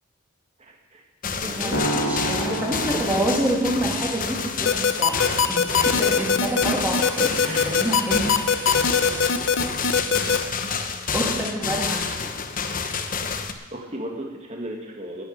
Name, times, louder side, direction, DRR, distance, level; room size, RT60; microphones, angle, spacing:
voice 1, 0.6-1.0 1.4-2.2 2.5-2.7 2.9-3.3 7.2-7.8 10.2-10.4 13.3-13.5 13.7-15.2, right 1 dB, 30° right, 0 dB, 1.9 m, -35 dB
sound 1, 1.2-13.5, left 5 dB, 40° left, 1.0 m, -29 dB
voice 2, 1.6-4.7 5.0-5.6 5.8-7.3 7.7-8.2 10.8-12.3, right 1 dB, 10° right, -4 dB, 2.9 m, -27 dB
sound 2, 1.7-4.1, equal, 90° left, 3.1 m, -29 dB
sound 3, 4.7-10.4, left 6 dB, 70° left, 0.8 m, -20 dB
11.5 x 9.2 x 9.9 m, 1.2 s
head